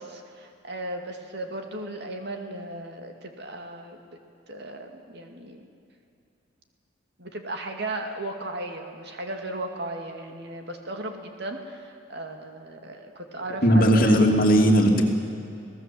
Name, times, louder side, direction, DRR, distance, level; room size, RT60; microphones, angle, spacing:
voice 1, 0.0-4.0 4.5-5.7 7.2-14.5, right 1 dB, 55° right, 4 dB, 2.3 m, -36 dB
voice 2, 13.6-15.0, equal, 45° left, 1 dB, 2.7 m, -17 dB
25.5 x 18.5 x 7.7 m, 2.6 s
head